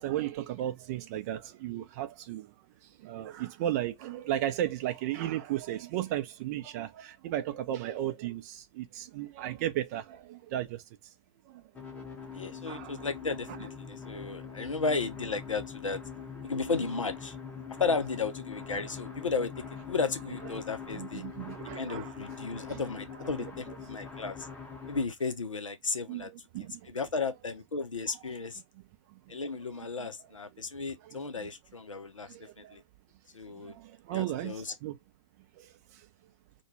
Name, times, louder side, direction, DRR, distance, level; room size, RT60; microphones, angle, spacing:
voice 1, 0.0-2.5 3.0-10.8 11.5-11.6 12.7-13.0 20.9-22.2 22.7-22.8 26.1-26.9 29.1-29.4 31.0-31.5 32.3-32.8 33.5-35.0 35.6-36.0, right 12 dB, 35° right, 0.5 m, -35 dB
sound 1, 11.7-25.0, left 6 dB, 10° left, 0.7 m, -43 dB
voice 2, 12.3-16.0 16.4-17.4 17.8-21.2 21.7-24.5 24.9-26.3 26.9-28.6 29.3-32.8 33.3-33.7 34.1-34.7, left 4 dB, 80° left, 0.5 m, -34 dB
2.2 x 2.2 x 3.1 m
figure-of-eight pair, 110°, 16 cm